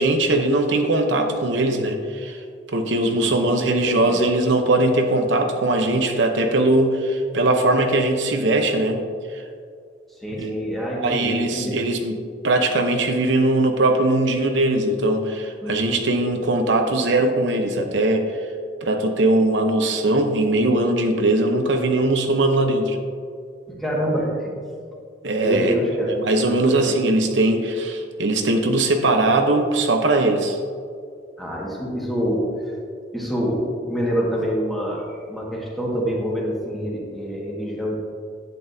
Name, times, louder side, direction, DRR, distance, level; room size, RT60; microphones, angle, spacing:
voice 1, 0.0-2.4 2.7-9.0 9.3-9.4 10.3-10.5 11.0-12.2 12.4-18.5 18.8-23.0 25.2-25.7 26.2-30.6, right 2 dB, 75° right, 4 dB, 0.8 m, -20 dB
voice 2, 3.0-3.6 3.9-4.2 10.1-11.8 15.6-16.0 23.7-24.5 25.4-27.0 31.4-32.8 33.1-38.0, equal, ahead, -5 dB, 1.6 m, -26 dB
10.5 x 8.4 x 2.7 m, 2.3 s
head